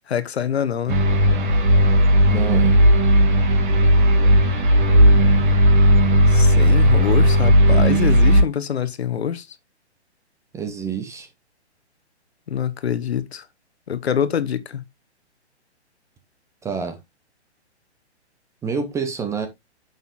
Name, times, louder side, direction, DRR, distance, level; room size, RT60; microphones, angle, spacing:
voice 1, 0.1-1.0 6.3-9.5 12.5-13.5 13.9-14.8, left 8 dB, 65° left, 1.2 m, -25 dB
sound 1, 0.9-8.4, equal, 45° right, 2.6 m, -15 dB
voice 2, 2.3-2.8 10.5-11.3 16.6-17.0 18.6-19.5, right 6 dB, 10° right, 0.7 m, -27 dB
8.9 x 6.8 x 2.4 m
figure-of-eight pair, 130°, 34 cm